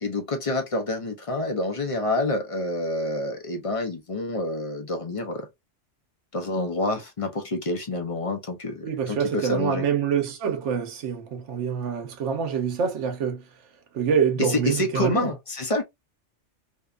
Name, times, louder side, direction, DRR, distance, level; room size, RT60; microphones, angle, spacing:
voice 1, 0.0-5.5 6.3-9.8 14.4-15.8, left 2 dB, 40° left, 0.5 m, -28 dB
voice 2, 8.8-13.4 13.9-15.3, right 7 dB, 80° right, 1.0 m, -26 dB
2.6 x 2.2 x 2.3 m
omnidirectional pair, 1.2 m